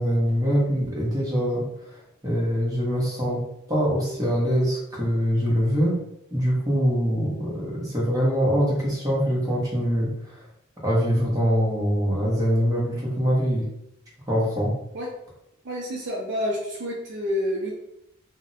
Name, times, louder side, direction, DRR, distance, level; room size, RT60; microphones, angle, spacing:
voice 1, 0.0-2.0 2.2-3.4 3.7-6.0 6.3-10.4 10.8-13.7 14.3-14.7, equal, 15° right, -6 dB, 1.0 m, -23 dB
voice 2, 15.6-17.7, left 1 dB, 55° right, -2 dB, 0.5 m, -28 dB
2.5 x 2.1 x 3.9 m, 0.80 s
head